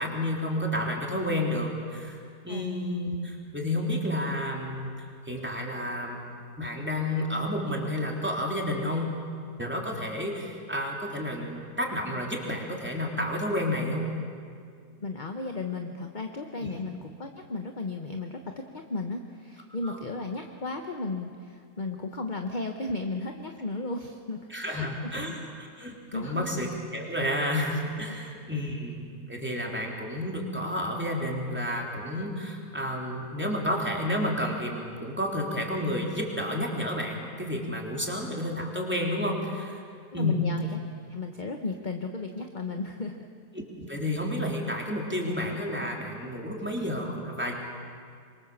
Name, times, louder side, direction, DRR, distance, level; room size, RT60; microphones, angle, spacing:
voice 1, 0.0-2.2 2.4-6.2 6.6-9.2 9.6-14.1 16.6-16.7 19.8-20.0 24.5-39.8 40.1-40.5 43.8-47.5, left 1 dB, 5° right, -1 dB, 3.5 m, -31 dB
voice 2, 15.0-25.1 26.1-26.5 28.1-28.2 28.5-28.6 40.1-40.8 41.1-43.3, left 3 dB, 30° left, 4 dB, 1.1 m, -35 dB
26.0 x 23.5 x 7.3 m, 2.2 s
omnidirectional pair, 1.8 m